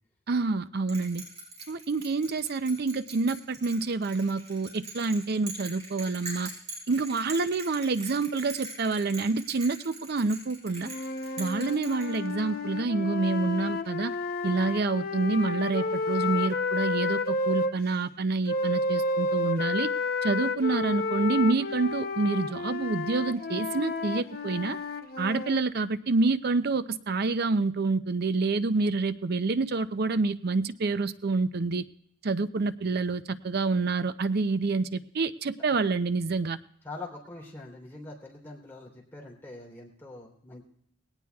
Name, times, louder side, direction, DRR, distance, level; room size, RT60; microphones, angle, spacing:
voice 1, 0.3-1.2 1.7-6.5 6.9-10.9 11.4-14.1 14.4-19.9 20.2-24.8 25.2-31.8 32.2-36.6, right 3 dB, 50° right, 12 dB, 0.5 m, -27 dB
Bell, 0.9-12.5, right 2 dB, 35° right, 6.5 m, -43 dB
sound 1, 10.8-17.7 18.5-25.6, left 3 dB, 50° left, 0.7 m, -31 dB
voice 2, 36.8-40.6, left 2 dB, 10° left, -3 dB, 3.3 m, -43 dB
19.0 x 18.0 x 2.3 m, 0.74 s
head